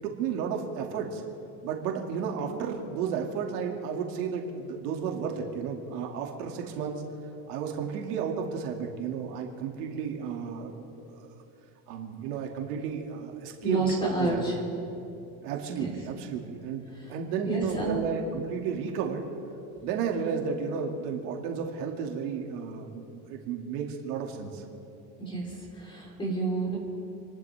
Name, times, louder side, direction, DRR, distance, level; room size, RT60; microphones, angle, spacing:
voice 1, 0.0-1.2 1.6-7.0 7.5-11.2 11.9-13.8 14.2-14.4 15.4-16.8 17.1-19.3 19.8-24.6, right 6 dB, 80° right, 1 dB, 2.5 m, -33 dB
voice 2, 13.6-14.6 15.8-15.9 16.9-17.2 17.4-18.0 25.2-26.8, right 2 dB, 10° left, -3 dB, 3.9 m, -30 dB
29.5 x 12.0 x 3.5 m, 2.8 s
cardioid pair, 155°, 47 cm